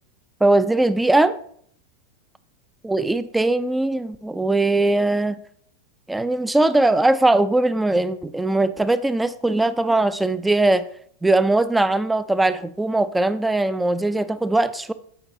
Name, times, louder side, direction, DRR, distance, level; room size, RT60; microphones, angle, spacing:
voice 1, 0.4-1.4 2.8-5.4 6.1-10.8 11.2-14.9, right 2 dB, 5° right, 14 dB, 0.3 m, -20 dB
7.8 x 5.1 x 2.7 m, 0.63 s
figure-of-eight pair, 90°, 0 cm